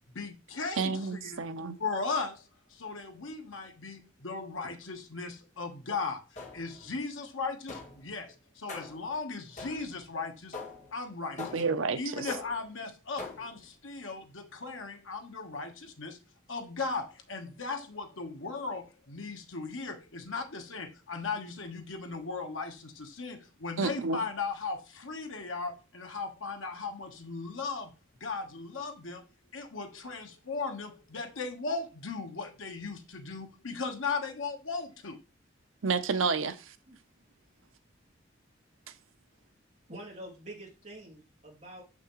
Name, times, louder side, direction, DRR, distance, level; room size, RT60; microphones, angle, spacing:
voice 1, 0.1-1.4 1.8-2.4 2.7-10.6 10.9-11.6 12.0-16.2 16.5-27.9 28.2-29.2 29.5-35.2, left 4 dB, 85° left, 1.3 m, -37 dB
voice 2, 0.8-1.8 11.4-12.3 23.8-24.2 35.8-36.7, right 4 dB, 85° right, 0.7 m, -30 dB
sound 1, 6.4-6.9 7.7-8.1 8.7-9.1 9.6-10.0 10.5-10.9 11.4-11.9 12.3-12.7 13.2-13.6, left 3 dB, 35° left, 1.6 m, -43 dB
voice 3, 39.9-41.8, right 1 dB, 35° right, 2.0 m, -46 dB
6.8 x 6.0 x 3.1 m
head